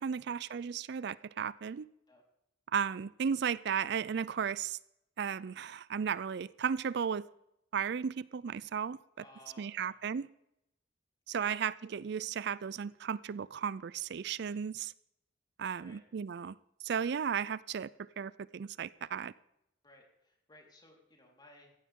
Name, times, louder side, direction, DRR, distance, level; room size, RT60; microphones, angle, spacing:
voice 1, 0.0-1.9 2.7-4.8 5.2-7.2 7.7-9.0 9.6-10.3 11.3-14.9 15.6-16.6 16.8-19.3, right 7 dB, 65° right, 19 dB, 0.4 m, -35 dB
voice 2, 9.2-9.9 11.3-11.5 15.8-16.0 19.8-21.7, left 1 dB, 25° left, 0 dB, 4.1 m, -59 dB
16.0 x 15.5 x 3.7 m, 0.81 s
head